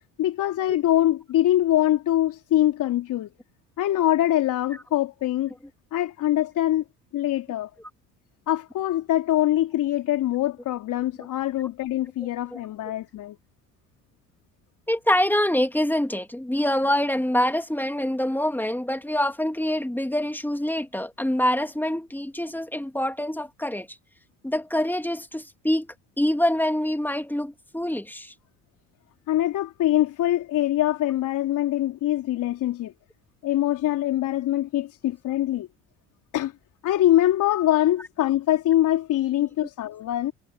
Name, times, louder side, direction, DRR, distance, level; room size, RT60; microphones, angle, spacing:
voice 1, 0.2-3.3 3.8-5.5 5.9-6.8 7.1-7.7 8.5-13.4 29.3-32.9 33.4-35.7 36.3-36.5 36.8-40.3, left 13 dB, 55° left, 4.1 m, -23 dB
voice 2, 14.9-24.0 24.4-28.3, left 1 dB, 5° left, 2.8 m, -25 dB
hypercardioid pair, 65°, 35 cm